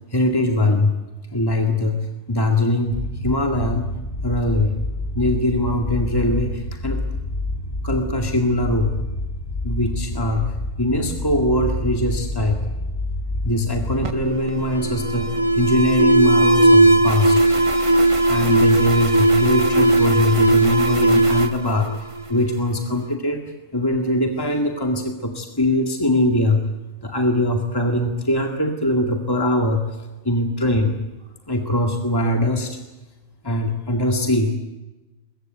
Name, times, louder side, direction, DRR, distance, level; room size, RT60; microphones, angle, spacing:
voice 1, 0.1-0.9 1.3-3.9 4.2-4.8 5.2-7.1 7.8-9.0 9.6-12.7 13.4-17.4 18.3-23.4 23.7-26.6 27.0-30.9 31.5-32.8 33.4-34.5, left 1 dB, 20° left, 3 dB, 2.2 m, -22 dB
sound 1, 2.9-14.2, left 1 dB, 60° left, 3.4 m, -28 dB
Alarm, 14.0-22.6, right 2 dB, 30° right, 1.2 m, -17 dB
23.0 x 22.5 x 9.3 m, 1.1 s
omnidirectional pair, 1.2 m